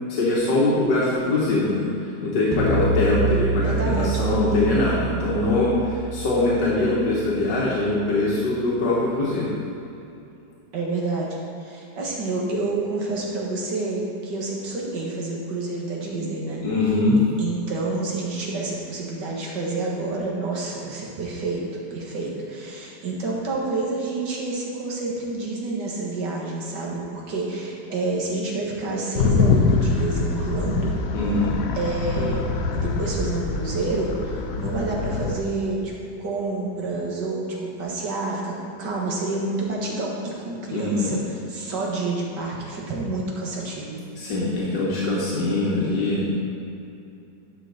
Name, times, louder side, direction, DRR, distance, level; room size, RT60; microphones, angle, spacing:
voice 1, 0.1-9.6 16.6-17.3 31.1-31.6 40.7-41.1 44.2-46.3, left 2 dB, 85° left, -6 dB, 1.9 m, -22 dB
sound 1, 2.5-7.9, right 4 dB, 10° left, 0.9 m, -27 dB
voice 2, 3.6-4.2 10.7-11.4 11.6-16.6 17.4-21.6 21.9-30.9 31.8-32.4 32.7-35.9 36.2-44.0, right 3 dB, 85° right, -2 dB, 2.0 m, -28 dB
sound 2, 29.1-35.4, left 4 dB, 65° left, 0.9 m, -24 dB
11.0 x 5.9 x 4.0 m, 2.7 s
omnidirectional pair, 1.8 m